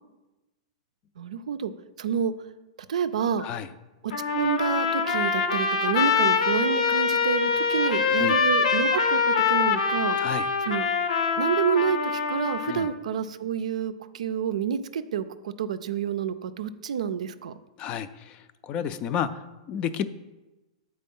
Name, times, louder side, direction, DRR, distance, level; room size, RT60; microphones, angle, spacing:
voice 1, 1.2-1.7 2.0-2.3 2.9-3.5 4.0-10.2 10.6-10.9 11.4-17.6, right 7 dB, 85° right, 12 dB, 0.4 m, -28 dB
Trumpet, 4.1-12.9, left 5 dB, 80° left, 0.8 m, -24 dB
voice 2, 17.8-18.4 18.6-19.4 19.7-20.0, left 8 dB, 30° left, 13 dB, 0.3 m, -31 dB
7.5 x 4.3 x 5.4 m, 1.1 s
hypercardioid pair, 150°, 4 cm